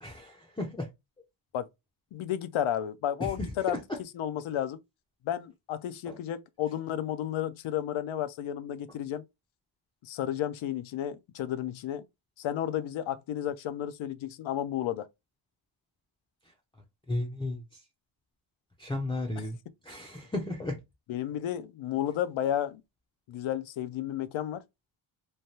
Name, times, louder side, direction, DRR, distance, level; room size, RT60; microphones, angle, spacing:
voice 1, 0.0-0.9 3.2-3.5 6.1-6.2 17.1-17.8 18.8-19.6 19.8-20.8, left 2 dB, 10° left, 0.5 m, -34 dB
voice 2, 2.1-4.8 5.2-9.2 10.0-12.1 12.4-15.1 21.1-22.8 23.3-24.6, left 11 dB, 70° left, 0.6 m, -32 dB
3.2 x 2.2 x 2.7 m
cardioid pair, 125°, 50 cm